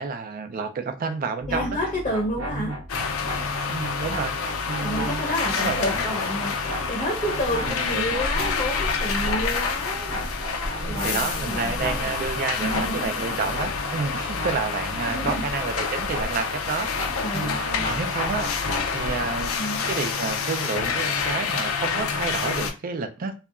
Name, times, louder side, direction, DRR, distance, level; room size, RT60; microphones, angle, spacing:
voice 1, 0.0-1.8 2.5-2.8 3.7-4.3 4.7-5.2 5.6-6.0 7.7-8.1 10.8-18.5 18.9-19.5 19.9-23.3, right 4 dB, 45° right, 7 dB, 0.4 m, -30 dB
sound 1, 1.4-19.5, equal, 85° right, 1.0 m, -35 dB
voice 2, 1.5-2.7 4.8-10.2 10.9-12.1 12.6-13.5 15.0-15.5 17.2-17.9 19.3-19.9, equal, 30° left, -3 dB, 0.6 m, -30 dB
sound 2, 2.9-22.7, left 5 dB, 85° left, 0.4 m, -28 dB
2.8 x 2.3 x 2.3 m, 0.31 s
head